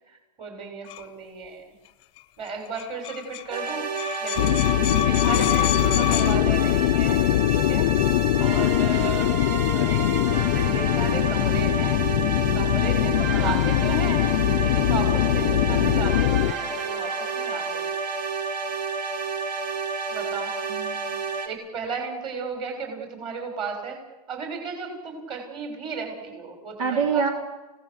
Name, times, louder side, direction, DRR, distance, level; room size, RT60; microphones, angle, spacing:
voice 1, 0.4-1.6 2.4-3.9 4.2-4.5 5.0-7.3 7.7-7.9 8.4-12.0 12.5-14.3 14.5-17.8 20.1-20.5 21.4-24.0 24.3-27.2, right 4 dB, 25° right, 4 dB, 7.0 m, -34 dB
sound 1, 0.9-1.0 2.2-2.3 2.4-2.5 2.7-6.4, left 18 dB, 25° left, 1.1 m, -29 dB
sound 2, 3.5-21.5, right 4 dB, 85° right, 4.4 m, -30 dB
sound 3, 4.4-16.5, left 14 dB, 45° left, 0.8 m, -22 dB
voice 2, 5.8-6.1 13.3-13.6 15.7-15.9 20.7-21.2 26.8-27.3, right 6 dB, 55° right, 3 dB, 3.8 m, -27 dB
29.5 x 18.5 x 8.1 m, 1.1 s
hypercardioid pair, 160°, 21 cm